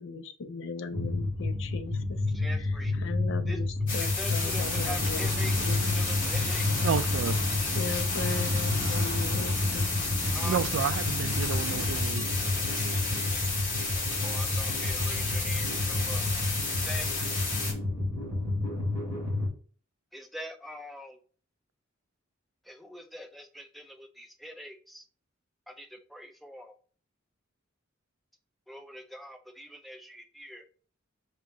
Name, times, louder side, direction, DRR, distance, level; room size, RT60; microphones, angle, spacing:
voice 1, 0.0-2.0 2.5-5.3 5.6-6.0 7.7-10.0, left 4 dB, 65° left, 0.5 m, -38 dB
sound 1, 0.9-19.5, left 2 dB, 15° left, 2.5 m, -31 dB
voice 2, 2.3-2.9 3.5-3.6 4.0-5.5 5.9-6.6 10.3-10.6 14.2-16.2 16.7-17.1 20.1-21.1 22.7-25.0 25.8-25.9 26.1-26.7 28.7-30.6, equal, ahead, 0.6 m, -43 dB
sound 2, 3.9-17.7, left 3 dB, 45° left, 2.2 m, -32 dB
sound 3, 4.5-12.0, right 1 dB, 55° right, 1.1 m, -38 dB
voice 3, 6.8-7.4 10.4-12.2, right 7 dB, 75° right, 0.3 m, -30 dB
4.9 x 2.9 x 3.7 m
head